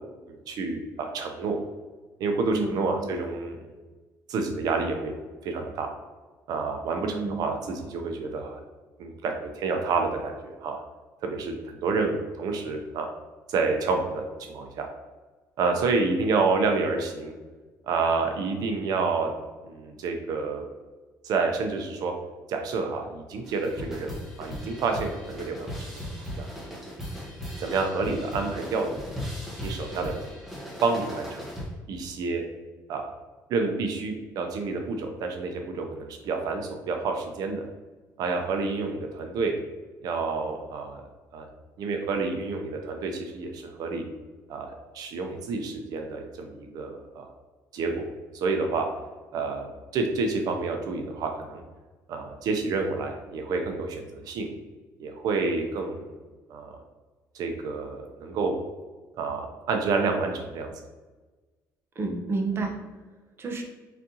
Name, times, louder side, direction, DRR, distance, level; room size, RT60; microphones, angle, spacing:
voice 1, 0.3-1.6 2.2-3.6 4.3-5.1 5.4-5.9 6.5-8.6 9.0-10.8 11.2-11.6 11.8-13.1 13.5-14.9 15.6-17.3 17.8-19.3 19.6-20.6 21.2-22.1 22.5-26.0 26.4-26.5 27.6-29.0 29.6-30.3 30.8-31.5 31.9-32.4 32.9-33.0 33.5-37.6 38.2-39.5 40.0-41.0 41.3-41.5 41.8-44.0 44.5-47.3 47.7-48.0 48.3-48.9 49.3-51.6 52.1-54.5 55.0-56.2 56.5-56.8 57.3-58.5 59.2-60.7, right 4 dB, 65° right, 4 dB, 0.6 m, -29 dB
voice 2, 2.5-3.1 7.0-7.4 62.0-62.7 63.4-63.6, right 3 dB, 35° right, 2 dB, 0.8 m, -30 dB
sound 1, 23.4-31.8, equal, 5° right, 1.2 m, -37 dB
4.2 x 3.6 x 2.7 m, 1.3 s
cardioid pair, 115°, 7 cm